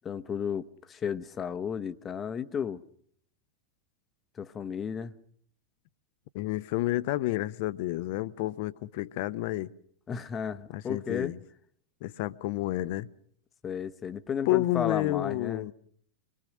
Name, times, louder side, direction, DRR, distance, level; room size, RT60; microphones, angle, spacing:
voice 1, 0.0-2.8 4.4-5.1 10.1-11.3 13.6-15.7, left 7 dB, 25° left, 1.0 m, -33 dB
voice 2, 6.3-9.7 10.7-11.4 12.0-13.1 14.5-15.7, left 17 dB, 50° left, 0.8 m, -30 dB
25.5 x 21.5 x 6.4 m
figure-of-eight pair, 90°, 0 cm